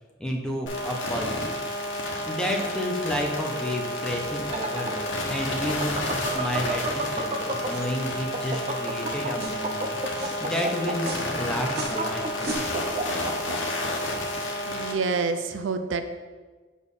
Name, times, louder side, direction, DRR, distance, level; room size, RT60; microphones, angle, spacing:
voice 1, 0.2-1.5 2.3-6.8 7.1-11.1 11.4-12.6, left 1 dB, 5° left, 0 dB, 0.9 m, -31 dB
sound 1, 0.7-14.9, left 1 dB, 85° left, 1.2 m, -31 dB
sound 2, 4.3-7.9 8.2-13.6, right 2 dB, 35° right, 0.6 m, -31 dB
sound 3, 6.2-6.5 6.9-7.1 7.7-7.9 8.4-8.7 9.3-9.6 10.1-10.4 11.0-11.3 11.7-12.0 12.4-12.7, right 3 dB, 55° right, 1.1 m, -39 dB
voice 2, 14.7-16.1, right 4 dB, 75° right, 9 dB, 0.5 m, -27 dB
7.1 x 4.4 x 5.5 m, 1.4 s
head